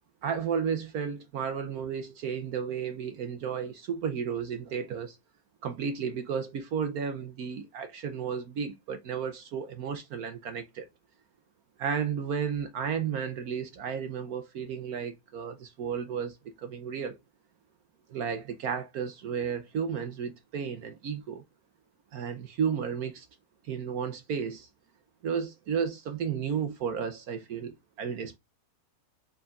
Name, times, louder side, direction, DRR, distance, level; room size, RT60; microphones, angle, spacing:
voice 1, 0.2-5.2 5.6-10.9 11.8-17.2 18.1-21.4 22.1-23.3 23.7-24.7 25.2-28.4, right 7 dB, 65° right, 1.1 m, -33 dB
4.8 x 4.6 x 2.4 m
omnidirectional pair, 1.9 m